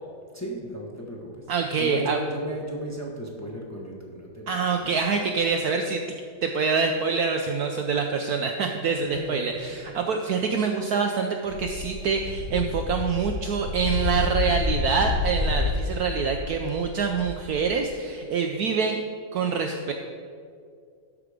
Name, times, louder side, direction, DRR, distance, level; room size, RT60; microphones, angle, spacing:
voice 1, 0.3-5.0 5.4-5.5 9.0-10.2, right 1 dB, 10° left, -2 dB, 0.9 m, -36 dB
voice 2, 1.5-2.2 4.5-6.0 6.4-19.0 19.3-19.9, right 5 dB, 70° right, 4 dB, 0.9 m, -25 dB
sound 1, 11.5-17.7, left 3 dB, 85° left, 1.7 m, -29 dB
12.5 x 4.9 x 5.0 m, 2.3 s
omnidirectional pair, 2.0 m